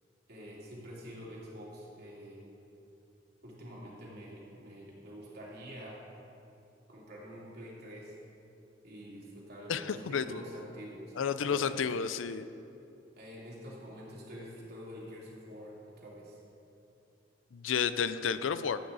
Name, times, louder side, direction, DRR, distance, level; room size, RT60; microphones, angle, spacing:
voice 1, 0.3-2.5 3.4-6.0 6.9-8.1 8.8-11.9 13.2-16.4, equal, 55° right, -5 dB, 2.7 m, -47 dB
voice 2, 9.7-10.4 11.2-12.5 17.5-18.8, left 6 dB, 85° left, 13 dB, 0.5 m, -31 dB
14.5 x 8.7 x 4.0 m, 2.7 s
head